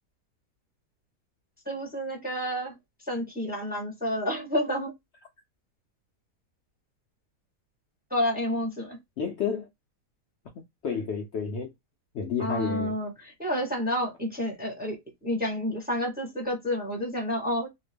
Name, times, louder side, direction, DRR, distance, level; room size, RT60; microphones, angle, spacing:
voice 1, 1.7-2.7 3.1-4.9 8.1-9.0 12.4-13.1 13.4-15.0 15.2-17.7, equal, 10° right, 0.7 m, -29 dB
voice 2, 9.2-9.7 10.6-11.7 12.1-13.0, left 6 dB, 85° left, 0.6 m, -31 dB
2.8 x 2.2 x 3.2 m
omnidirectional pair, 1.8 m